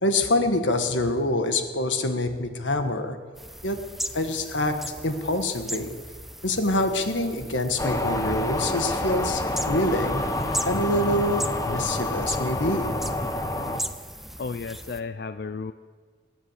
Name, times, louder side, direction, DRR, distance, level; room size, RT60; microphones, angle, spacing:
voice 1, 0.0-3.2 3.6-3.8 4.1-5.9 6.4-10.2 10.6-13.0, left 1 dB, 85° left, 7 dB, 1.6 m, -26 dB
sound 1, 3.3-15.0, right 1 dB, ahead, 0.4 m, -38 dB
sound 2, 7.8-13.8, left 1 dB, 15° left, 1.0 m, -28 dB
voice 2, 14.4-15.7, left 4 dB, 55° left, 11 dB, 0.4 m, -33 dB
20.0 x 8.9 x 8.1 m, 1.5 s
head